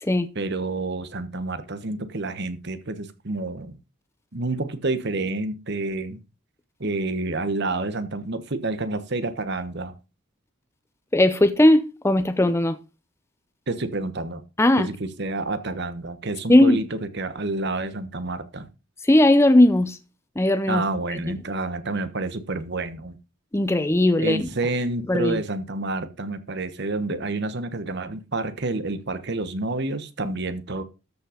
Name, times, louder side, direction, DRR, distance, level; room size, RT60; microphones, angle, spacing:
voice 1, 0.3-3.7 4.3-6.2 6.8-9.9 13.7-14.4 14.8-18.7 20.7-23.2 24.2-30.8, right 2 dB, 55° right, 1.2 m, -29 dB
voice 2, 11.1-12.8 14.6-14.9 16.5-16.8 19.0-20.0 20.4-20.8 21.1-21.2 23.5-24.5 25.1-25.4, left 1 dB, 10° left, 0.6 m, -18 dB
13.5 x 5.5 x 5.1 m
head